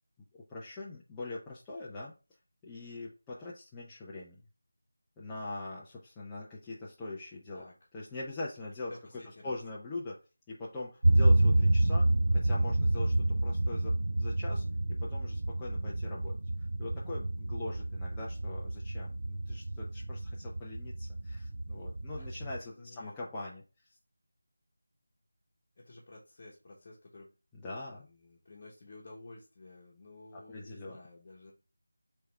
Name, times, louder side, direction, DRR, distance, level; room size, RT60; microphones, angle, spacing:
voice 1, 0.3-2.1 2.6-4.4 5.2-7.6 7.9-8.9 9.4-10.2 10.5-14.6 15.0-16.4 16.8-23.6 27.6-28.1 30.3-31.0, left 2 dB, 10° left, -6 dB, 0.5 m, -42 dB
voice 2, 8.9-9.6 22.2-22.3 22.8-23.2 25.8-27.3 27.9-31.5, left 2 dB, 35° left, -5 dB, 1.1 m, -52 dB
sound 1, 11.0-22.6, right 1 dB, 70° right, 0.3 m, -29 dB
3.4 x 3.4 x 4.5 m, 0.31 s
figure-of-eight pair, 170°, 0 cm